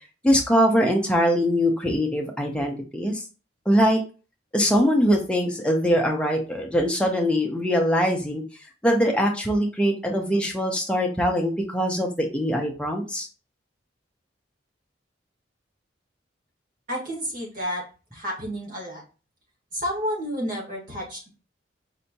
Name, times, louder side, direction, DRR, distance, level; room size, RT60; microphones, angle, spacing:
voice 1, 0.2-3.2 3.7-4.0 4.5-8.4 8.8-13.3, equal, 5° left, 1 dB, 0.6 m, -22 dB
voice 2, 16.9-17.8 18.1-19.0 19.7-21.3, equal, 45° right, -2 dB, 1.6 m, -30 dB
4.4 x 2.8 x 2.7 m, 0.34 s
head